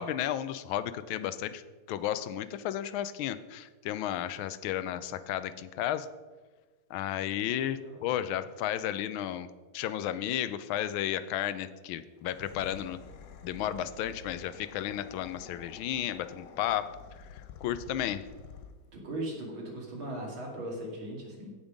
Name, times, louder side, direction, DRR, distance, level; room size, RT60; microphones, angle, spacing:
voice 1, 0.0-1.6 1.9-6.1 6.9-9.5 9.7-13.0 13.4-17.0 17.6-18.2, left 11 dB, 80° left, 14 dB, 1.4 m, -33 dB
voice 2, 7.3-8.1 18.9-21.5, right 1 dB, 75° right, -2 dB, 3.3 m, -39 dB
sound 1, 12.2-19.0, left 6 dB, 65° left, 0.9 m, -49 dB
16.0 x 5.4 x 5.1 m, 1.3 s
omnidirectional pair, 2.2 m